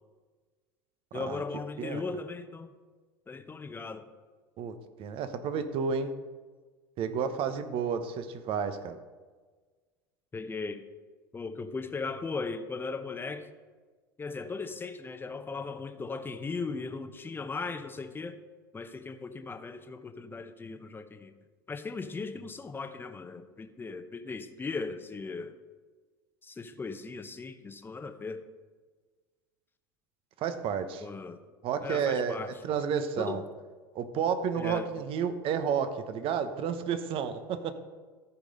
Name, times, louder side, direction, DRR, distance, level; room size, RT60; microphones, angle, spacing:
voice 1, 1.1-2.7 3.3-4.1 10.3-10.8 11.3-13.5 14.2-18.3 18.7-21.3 21.7-25.5 26.4-28.4 31.0-31.4 31.8-32.5 33.2-33.4 34.6-34.9, left 4 dB, 20° left, 8 dB, 0.9 m, -37 dB
voice 2, 4.6-6.1 7.0-9.0 30.4-31.1 31.6-32.4 32.6-33.4 33.9-37.7, right 7 dB, 50° right, 10 dB, 1.0 m, -31 dB
14.0 x 5.0 x 5.4 m, 1.4 s
hypercardioid pair, 85°, 12 cm